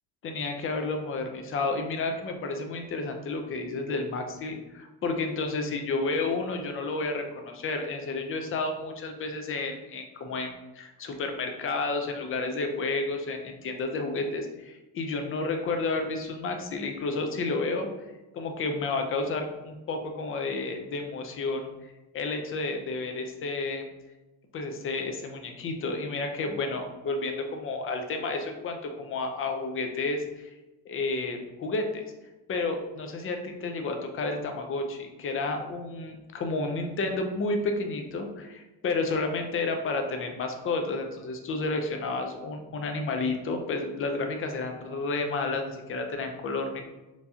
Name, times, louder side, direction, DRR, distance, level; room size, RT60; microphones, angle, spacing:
voice 1, 0.2-17.9 18.3-21.7 22.1-23.8 24.5-30.5 30.9-32.0 32.5-46.8, left 3 dB, 35° left, 5 dB, 0.5 m, -31 dB
4.4 x 2.7 x 2.7 m, 1.0 s
cardioid pair, 135°, 36 cm